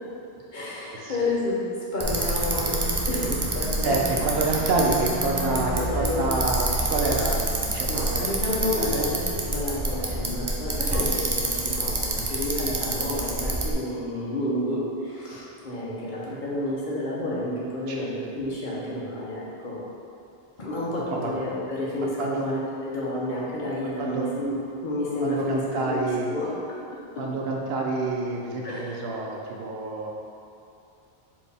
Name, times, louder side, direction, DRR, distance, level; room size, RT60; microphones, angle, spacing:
voice 1, 0.5-1.6 1.9-4.0 4.4-4.6 5.4-6.6 7.9-19.8 20.6-26.8 28.6-29.0, left 1 dB, 55° left, -6 dB, 0.9 m, -30 dB
Bicycle, 2.0-13.7, right 2 dB, 40° right, 0.3 m, -27 dB
voice 2, 3.8-9.1 17.9-18.1 21.1-21.3 22.2-22.5 24.0-24.3 25.2-26.3 27.2-30.1, right 2 dB, 75° right, -1 dB, 0.8 m, -28 dB
4.4 x 2.9 x 3.4 m, 2.6 s
omnidirectional pair, 1.0 m